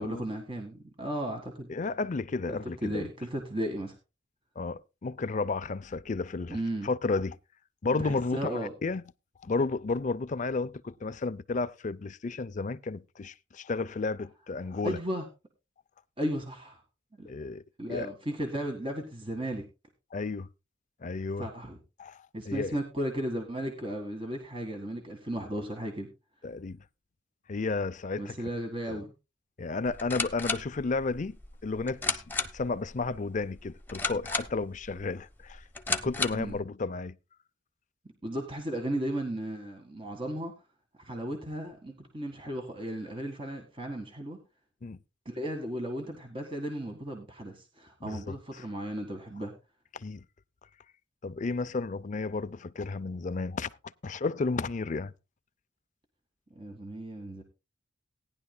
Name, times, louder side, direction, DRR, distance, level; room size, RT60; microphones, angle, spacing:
voice 1, 0.0-1.7 2.5-4.0 6.5-6.9 8.0-8.7 14.8-15.3 16.2-16.8 17.2-17.5 17.8-19.6 21.4-21.8 22.3-26.1 28.2-29.1 36.3-36.6 38.2-40.5 41.0-44.4 45.3-49.5 56.6-57.4, right 1 dB, 25° right, 1.7 m, -35 dB
voice 2, 1.7-3.1 4.6-6.6 6.8-7.4 7.8-9.0 9.4-15.0 17.3-18.1 20.1-20.5 21.0-21.5 22.0-22.8 26.4-26.8 27.5-28.4 28.9-29.0 29.6-31.4 31.6-32.2 32.5-37.2 44.8-45.0 48.1-48.4 49.9-50.2 51.2-53.7 54.0-55.1, left 3 dB, 40° left, 0.5 m, -32 dB
sound 1, 29.9-36.6, left 3 dB, 10° left, 1.0 m, -35 dB
18.0 x 10.5 x 2.2 m
head